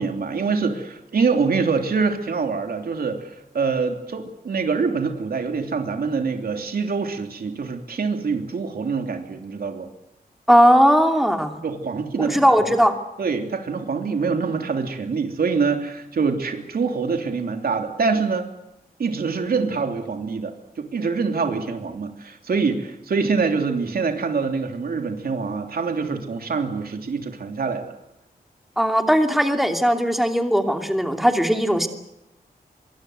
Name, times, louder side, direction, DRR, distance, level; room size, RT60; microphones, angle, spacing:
voice 1, 0.0-9.9 11.6-12.4 13.2-18.5 19.0-20.5 20.8-27.9, right 5 dB, 70° right, 5 dB, 3.2 m, -25 dB
voice 2, 10.5-11.6 12.2-13.0 28.8-31.9, equal, ahead, 5 dB, 2.7 m, -18 dB
25.5 x 23.0 x 8.0 m, 0.85 s
wide cardioid pair, 140°, 16 cm